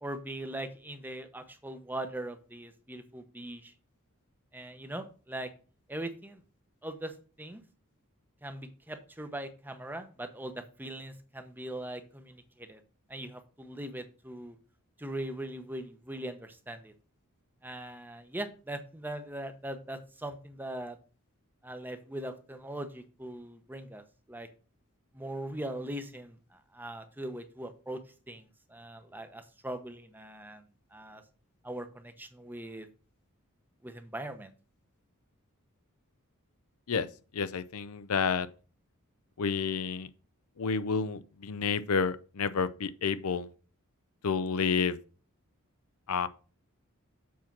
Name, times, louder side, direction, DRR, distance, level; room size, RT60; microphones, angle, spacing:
voice 1, 0.0-3.7 4.5-5.5 5.9-6.4 6.8-7.1 7.4-7.6 8.4-12.8 13.1-14.6 15.0-16.9 17.6-21.0 21.6-24.0 24.3-24.5 25.1-28.0 28.3-30.6 30.9-31.2 31.6-32.9 33.8-34.5, right 1 dB, 10° right, 0.8 m, -40 dB
voice 2, 37.3-38.5 39.4-40.1 40.6-43.5 44.2-45.0 46.1-46.3, left 5 dB, 80° left, 0.6 m, -30 dB
7.4 x 4.4 x 5.8 m
head